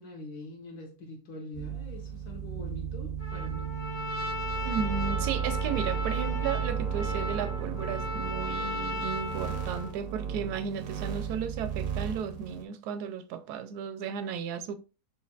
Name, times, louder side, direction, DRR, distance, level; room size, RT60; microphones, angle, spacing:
voice 1, 0.0-3.7, left 2 dB, 75° left, 1.7 m, -44 dB
sound 1, 1.5-12.6, right 7 dB, 55° right, 0.6 m, -34 dB
Trumpet, 3.2-10.0, left 2 dB, 50° left, 1.5 m, -36 dB
voice 2, 4.6-14.7, right 7 dB, 85° right, 1.1 m, -34 dB
6.5 x 2.8 x 2.3 m
omnidirectional pair, 1.7 m